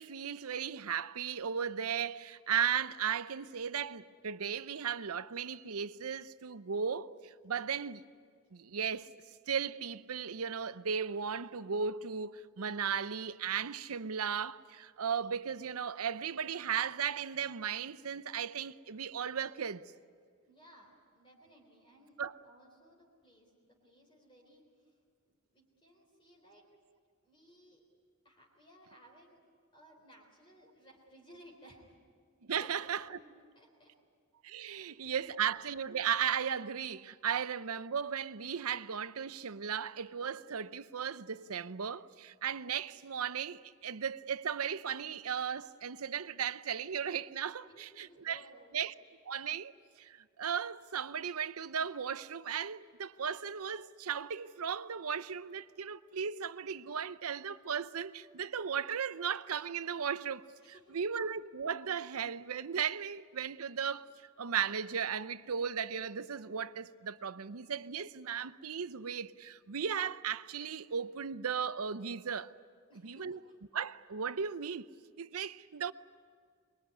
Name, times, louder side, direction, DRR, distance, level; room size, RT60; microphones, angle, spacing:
voice 1, 0.0-8.1 8.5-9.1 9.5-19.8 22.2-22.3 32.4-33.0 34.4-48.4 48.7-48.9 49.3-49.7 50.0-60.4 60.9-64.1 64.4-72.5 73.0-73.4 73.7-74.9 75.2-75.9, right 7 dB, 75° right, 0.7 m, -36 dB
voice 2, 20.5-22.2 22.4-25.0 25.3-26.7 27.2-27.8 28.2-29.4 29.7-32.0 32.5-33.9 34.6-35.3 47.6-48.7 60.6-61.0 72.9-73.6, equal, 25° left, 3.8 m, -60 dB
24.0 x 22.5 x 9.7 m
head